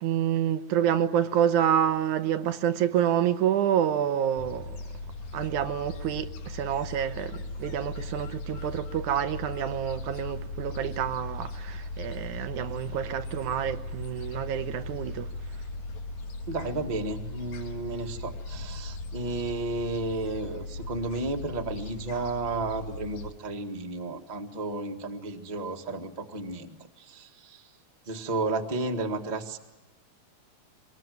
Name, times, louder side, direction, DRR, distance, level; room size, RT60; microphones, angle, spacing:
voice 1, 0.0-4.8 5.3-15.3, right 10 dB, 85° right, 2.5 m, -28 dB
Gull seagull, 4.4-23.3, left 2 dB, 80° left, 2.8 m, -38 dB
voice 2, 16.5-27.6 28.1-29.6, right 3 dB, 20° right, 1.3 m, -33 dB
24.5 x 21.0 x 9.3 m
omnidirectional pair, 3.4 m